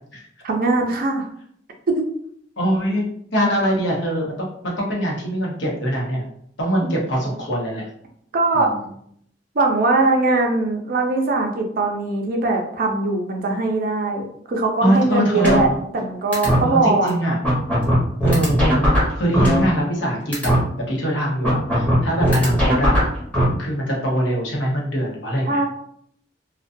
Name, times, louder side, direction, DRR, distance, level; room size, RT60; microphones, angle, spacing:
voice 1, 0.4-1.3 1.9-2.0 6.8-6.9 8.3-8.7 9.5-17.1 25.5-25.7, right 3 dB, 50° right, 3 dB, 0.5 m, -21 dB
voice 2, 2.6-3.0 3.3-6.2 6.6-7.8 8.5-8.7 14.8-15.6 16.6-17.4 18.2-20.5 20.9-23.0 23.6-25.6, equal, 70° left, -2 dB, 0.8 m, -22 dB
sound 1, 15.4-16.0 16.3-16.6 17.1-17.2 17.4-20.0 20.3-20.6 21.4-23.4, equal, 10° left, 0.9 m, -18 dB
2.4 x 2.2 x 2.5 m, 0.69 s
head